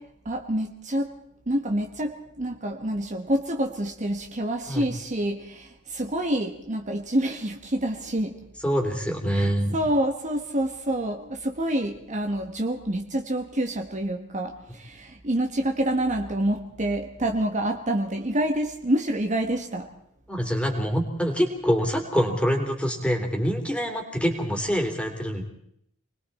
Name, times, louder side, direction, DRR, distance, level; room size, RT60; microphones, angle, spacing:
voice 1, 0.2-1.2 1.5-8.4 9.3-19.9, right 1 dB, 35° right, 4 dB, 1.4 m, -27 dB
voice 2, 8.6-9.7 20.3-25.4, equal, 5° left, 2 dB, 3.3 m, -25 dB
29.5 x 21.0 x 4.3 m, 0.72 s
head